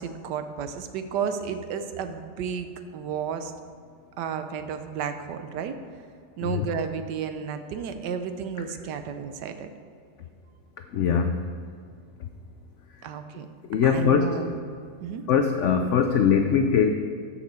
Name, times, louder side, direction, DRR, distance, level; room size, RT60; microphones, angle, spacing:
voice 1, 0.0-2.7 2.9-3.5 4.2-5.8 6.4-9.7 13.0-13.5 13.8-14.6 15.0-15.2, right 7 dB, 85° right, 8 dB, 1.3 m, -32 dB
voice 2, 10.9-11.5 12.2-12.3 13.7-14.4 15.3-16.9, left 7 dB, 80° left, 6 dB, 0.6 m, -22 dB
13.0 x 5.9 x 4.2 m, 2.2 s
omnidirectional pair, 1.8 m